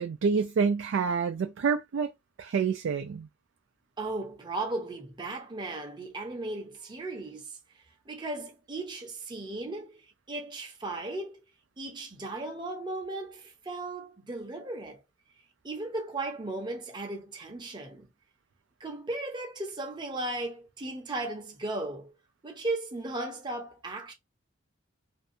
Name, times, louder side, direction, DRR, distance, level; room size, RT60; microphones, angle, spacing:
voice 1, 0.0-2.1 2.4-3.3, right 5 dB, 70° right, 0.3 m, -27 dB
voice 2, 4.0-11.4 11.8-15.0 15.6-18.1 18.8-22.2 22.4-24.1, right 2 dB, 25° right, 0.6 m, -36 dB
2.6 x 2.2 x 2.6 m
head